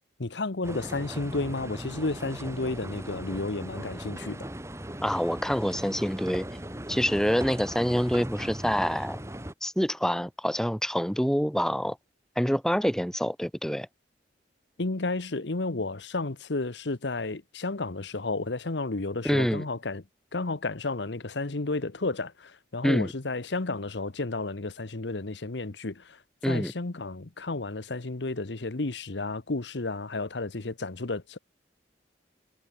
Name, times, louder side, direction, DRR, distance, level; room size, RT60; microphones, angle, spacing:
voice 1, 0.2-4.5 14.8-20.0 20.3-26.2 26.5-31.4, left 3 dB, 80° left, 1.1 m, -32 dB
sound 1, 0.6-9.5, right 1 dB, 15° right, 3.0 m, -38 dB
voice 2, 5.0-6.5 6.9-9.2 9.6-12.0 12.3-13.9 19.2-19.6 22.8-23.1 26.4-26.7, equal, 5° left, 1.5 m, -26 dB
head